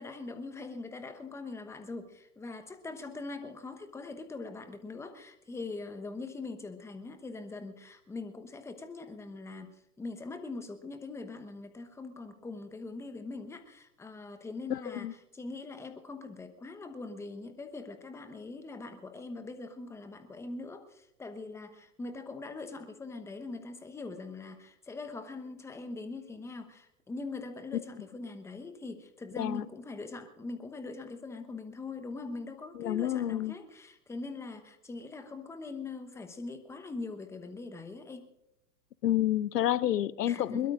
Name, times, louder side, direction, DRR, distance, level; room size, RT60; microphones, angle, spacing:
voice 1, 0.0-15.1 15.3-38.3 40.2-40.7, left 3 dB, 5° left, 1.0 m, -42 dB
voice 2, 14.7-15.1 27.7-27.8 29.4-29.7 32.7-33.5 39.0-40.7, left 12 dB, 80° left, 0.7 m, -29 dB
22.0 x 22.0 x 2.5 m
hypercardioid pair, 125°, 48 cm